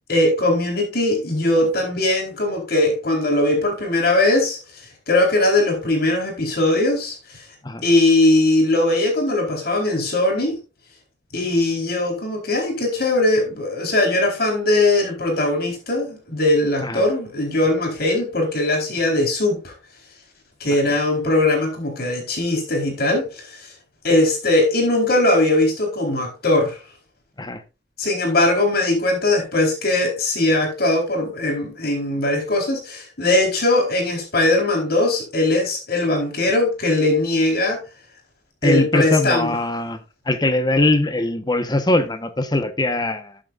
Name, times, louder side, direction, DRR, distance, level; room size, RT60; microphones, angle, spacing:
voice 1, 0.1-4.6 5.1-7.4 7.8-10.6 11.3-19.7 20.6-23.7 24.0-26.8 28.0-37.8 38.6-39.5, left 2 dB, 60° left, 4.4 m, -20 dB
voice 2, 38.6-40.0 40.2-43.4, left 2 dB, 25° left, 1.2 m, -21 dB
13.0 x 8.9 x 2.6 m
head